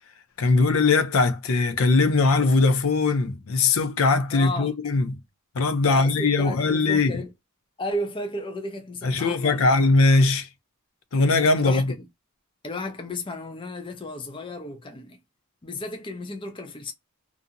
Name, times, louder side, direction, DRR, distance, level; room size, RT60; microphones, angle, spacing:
voice 1, 0.4-5.2 5.5-7.2 9.0-10.5 11.1-11.9, left 3 dB, 70° left, 0.5 m, -20 dB
voice 2, 4.3-4.7 5.9-7.3 7.8-9.7 11.6-12.0 12.6-15.2 15.6-16.9, left 1 dB, 25° left, 0.5 m, -33 dB
2.6 x 2.5 x 2.5 m
head